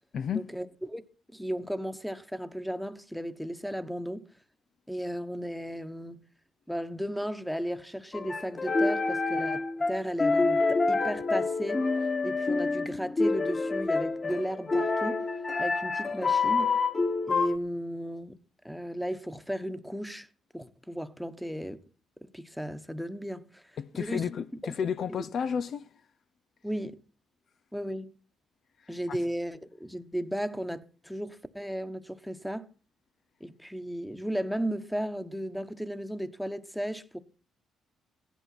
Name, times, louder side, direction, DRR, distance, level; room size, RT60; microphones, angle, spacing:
voice 1, 0.3-1.0 1.3-4.2 4.9-6.2 6.7-15.2 15.6-16.8 17.3-18.4 18.6-20.3 20.5-21.8 22.3-23.6 23.9-24.3 24.6-24.7 25.1-25.2 26.6-27.0 27.7-28.1 28.9-32.7 33.4-37.2, equal, ahead, 1.2 m, -35 dB
sound 1, 8.1-17.6, left 3 dB, 30° left, 1.6 m, -27 dB
voice 2, 23.8-25.9 29.1-29.2, left 7 dB, 60° left, 0.6 m, -32 dB
15.0 x 11.5 x 5.8 m
cardioid pair, 90°, 0 cm